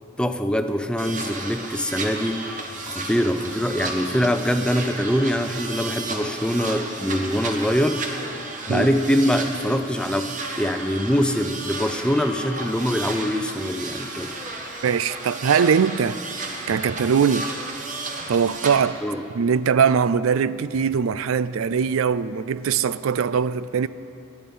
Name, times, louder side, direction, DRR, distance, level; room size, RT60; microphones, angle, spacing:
voice 1, 0.2-8.1 8.7-14.3 19.0-19.2, equal, 5° left, 7 dB, 0.6 m, -23 dB
sound 1, 1.0-18.8, right 2 dB, 40° right, 1.4 m, -33 dB
voice 2, 14.8-16.2 16.7-17.5 18.3-19.0 19.3-23.9, right 6 dB, 85° right, 16 dB, 0.4 m, -21 dB
19.0 x 13.0 x 5.4 m, 2.7 s
head